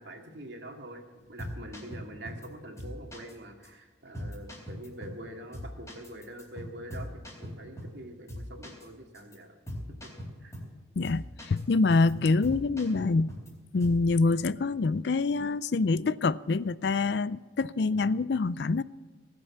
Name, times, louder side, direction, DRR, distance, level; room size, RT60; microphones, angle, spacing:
voice 1, 0.0-9.5 10.0-10.1 10.4-10.5, right 1 dB, 70° right, 2.2 m, -45 dB
sound 1, 1.2-2.5 2.8-3.3 3.6-3.7 4.1-5.3 5.5-8.0 8.3-8.9 9.1-9.4 9.7-10.7 11.0-11.6 11.9-13.5 13.8-14.1, equal, 15° left, 4.1 m, -41 dB
voice 2, 11.0-13.3 13.7-18.8, left 3 dB, 65° left, 0.4 m, -26 dB
19.5 x 7.7 x 7.2 m
head